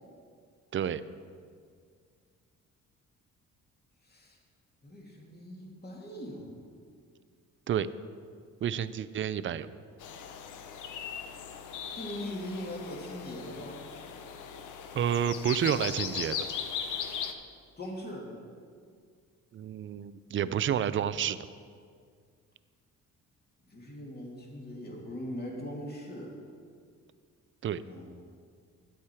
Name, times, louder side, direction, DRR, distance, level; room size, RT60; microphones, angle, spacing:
voice 1, 4.1-4.4 4.8-6.5 11.9-13.8 17.8-18.3 23.7-26.3 27.7-28.1, left 1 dB, 30° left, -2 dB, 2.4 m, -40 dB
voice 2, 8.6-9.7 14.9-16.4 19.5-21.4 27.6-27.8, right 9 dB, 40° right, 15 dB, 0.4 m, -29 dB
sound 1, 10.0-17.3, left 7 dB, 80° left, 0.8 m, -38 dB
10.5 x 8.3 x 4.4 m, 2.1 s
cardioid pair, 90°, 30 cm